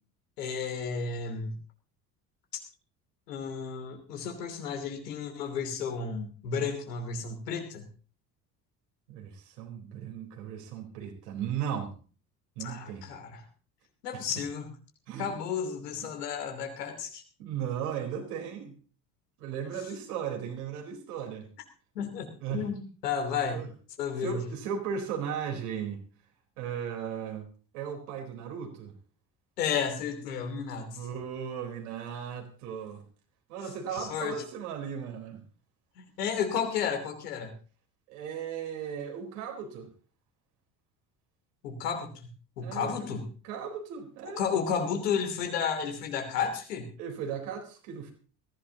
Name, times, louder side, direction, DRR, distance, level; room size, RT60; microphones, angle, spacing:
voice 1, 0.4-1.6 2.5-2.6 3.3-7.9 12.6-13.4 14.0-14.7 15.2-17.2 21.9-23.6 24.0-24.4 29.6-31.0 33.9-34.4 36.0-37.5 41.6-42.3 42.6-43.3 44.4-46.9, left 6 dB, 70° left, 4 dB, 3.1 m, -32 dB
voice 2, 9.1-11.9 12.6-13.1 14.1-14.2 15.1-15.3 16.0-16.1 17.4-18.7 19.4-21.5 22.4-22.7 23.5-23.7 24.2-26.0 26.6-28.9 30.8-33.0 33.5-35.4 38.1-39.9 42.6-43.1 43.4-44.4 47.0-48.1, right 8 dB, 65° right, 2 dB, 4.3 m, -36 dB
21.0 x 15.5 x 3.0 m, 0.40 s
figure-of-eight pair, 60°, 49 cm